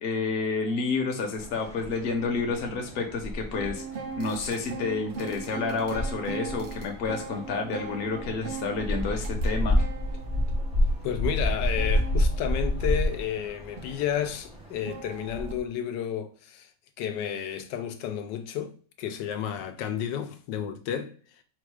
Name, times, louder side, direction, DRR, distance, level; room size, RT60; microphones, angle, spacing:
voice 1, 0.0-3.8 4.2-9.8, left 4 dB, 45° left, 0.9 m, -29 dB
sound 1, 1.4-15.6, equal, 10° right, 0.4 m, -30 dB
sound 2, 3.5-15.5, right 6 dB, 85° right, 0.5 m, -41 dB
voice 2, 11.0-16.7 17.0-21.4, left 9 dB, 80° left, 1.2 m, -32 dB
4.3 x 2.3 x 4.7 m
omnidirectional pair, 1.9 m